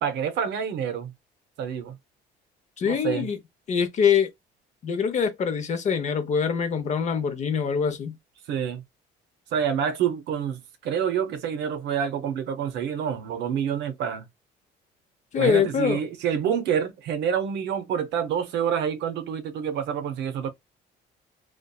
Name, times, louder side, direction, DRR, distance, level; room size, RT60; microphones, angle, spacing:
voice 1, 0.0-1.1 1.6-2.0 2.8-3.3 8.5-8.8 9.5-14.3 15.4-20.5, right 8 dB, 70° right, 0.6 m, -27 dB
voice 2, 2.8-3.4 3.7-4.3 4.8-8.2 15.3-16.0, left 7 dB, 40° left, 0.6 m, -24 dB
2.6 x 2.3 x 2.2 m
cardioid pair, 125°, 18 cm